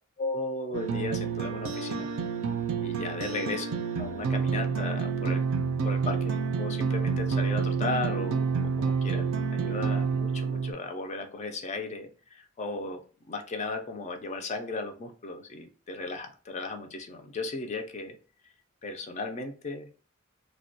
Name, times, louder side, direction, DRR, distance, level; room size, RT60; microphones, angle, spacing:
voice 1, 0.2-2.1 2.8-3.7 4.0-5.4 5.8-9.3 9.5-13.0 13.3-18.2 18.8-19.9, left 3 dB, 35° left, 5 dB, 0.3 m, -35 dB
sound 1, 0.7-10.7, right 5 dB, 75° right, 0.3 m, -29 dB
2.2 x 2.1 x 2.6 m, 0.37 s
head